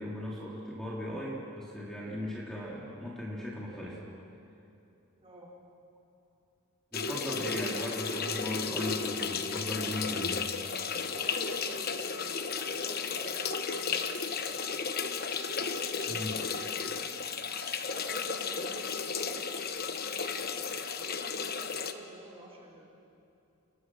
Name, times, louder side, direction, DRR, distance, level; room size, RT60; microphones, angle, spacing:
voice 1, 0.0-4.0 6.9-10.4 16.1-16.4, equal, ahead, -5 dB, 3.4 m, -37 dB
sound 1, 6.9-21.9, left 5 dB, 45° left, 1.1 m, -34 dB
voice 2, 10.7-14.6 15.7-17.2 17.8-20.4 21.0-22.9, right 1 dB, 30° right, -3 dB, 4.5 m, -49 dB
30.0 x 21.0 x 6.3 m, 2.7 s
head